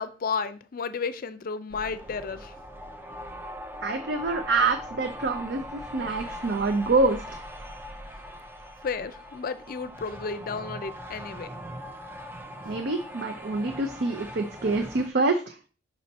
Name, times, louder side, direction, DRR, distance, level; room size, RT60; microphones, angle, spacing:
voice 1, 0.0-2.6 8.1-8.2 8.8-11.5, left 5 dB, 50° left, 0.5 m, -33 dB
sound 1, 1.7-15.1, equal, 10° right, 0.5 m, -41 dB
voice 2, 3.8-7.2 12.6-15.6, right 3 dB, 60° right, 0.5 m, -26 dB
5.4 x 4.4 x 4.1 m
head